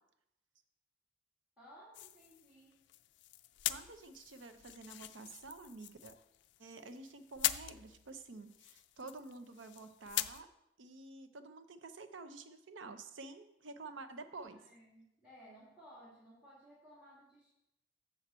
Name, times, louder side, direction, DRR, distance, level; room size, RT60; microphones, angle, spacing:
voice 1, 1.6-2.9 14.5-17.5, equal, 5° right, -8 dB, 2.4 m, -58 dB
sound 1, 1.9-10.4, left 14 dB, 65° left, 0.3 m, -42 dB
voice 2, 3.7-6.1 6.6-10.5 10.8-14.6, right 3 dB, 85° right, 9 dB, 0.7 m, -50 dB
7.5 x 6.4 x 4.3 m, 0.84 s
head